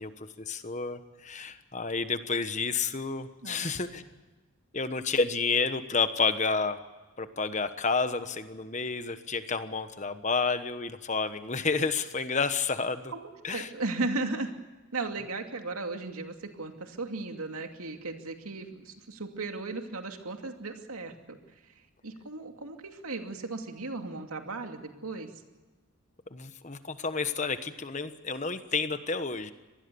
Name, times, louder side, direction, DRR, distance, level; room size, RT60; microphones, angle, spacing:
voice 1, 0.0-4.0 4.7-6.8 7.2-13.1 13.4-13.7 26.3-29.5, left 4 dB, 35° left, 10 dB, 1.2 m, -30 dB
voice 2, 13.1-14.5 14.9-21.4 22.0-25.3, right 3 dB, 90° right, 4 dB, 2.5 m, -36 dB
25.0 x 19.5 x 7.0 m, 1.2 s
head